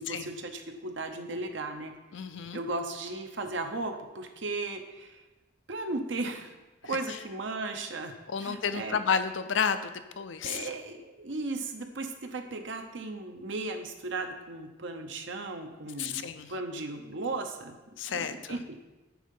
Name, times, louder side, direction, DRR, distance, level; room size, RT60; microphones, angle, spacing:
voice 1, 0.0-1.9 2.5-5.2 5.7-6.5 6.9-8.1 8.4-9.0 10.4-17.8 18.1-18.7, right 2 dB, 70° right, 5 dB, 0.9 m, -36 dB
voice 2, 2.1-2.6 6.8-7.2 8.3-10.7 16.0-16.5 18.0-18.6, left 6 dB, 75° left, 10 dB, 0.5 m, -31 dB
9.3 x 3.7 x 5.4 m, 1.1 s
head